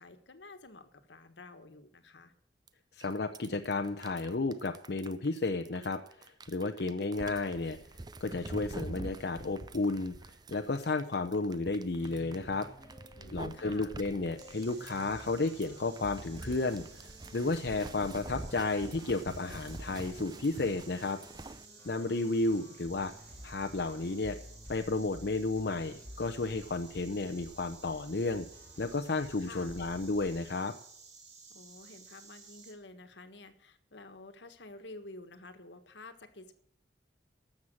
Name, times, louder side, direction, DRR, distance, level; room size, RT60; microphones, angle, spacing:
voice 1, 0.0-2.3 13.2-13.9 29.4-29.9 31.5-36.5, left 2 dB, 80° left, 9 dB, 1.4 m, -50 dB
sound 1, 2.7-2.8 3.0-21.7, right 2 dB, 25° right, 0.5 m, -46 dB
voice 2, 3.0-7.8 8.2-12.7 13.3-21.2 21.8-23.1 23.4-24.4 24.7-28.5 28.8-30.7, left 3 dB, 60° left, 5 dB, 0.7 m, -32 dB
sound 2, 11.9-30.4, equal, 15° left, 3.4 m, -53 dB
Insect, 14.4-32.7, right 5 dB, 70° right, 2.9 m, -55 dB
12.5 x 7.4 x 7.6 m, 0.71 s
head